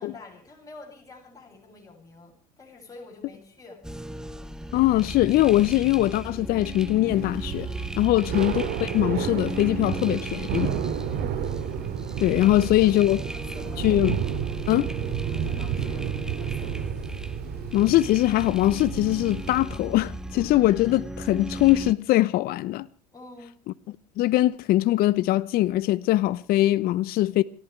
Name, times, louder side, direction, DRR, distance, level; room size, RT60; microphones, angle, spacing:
voice 1, 0.0-3.8 11.0-11.4 12.4-12.9 13.3-14.0 15.3-16.9 23.1-23.6, left 3 dB, 15° left, 7.5 m, -48 dB
sound 1, 3.8-21.9, right 1 dB, 5° right, 1.1 m, -36 dB
voice 2, 4.7-7.7 8.0-10.8 12.2-13.2 13.8-14.2 14.7-14.9 17.7-22.9 24.2-27.4, left 16 dB, 45° left, 0.8 m, -22 dB
Thunder / Rain, 7.1-20.0, right 9 dB, 50° right, 2.5 m, -31 dB
29.5 x 14.5 x 3.3 m
hypercardioid pair, 80°, 21 cm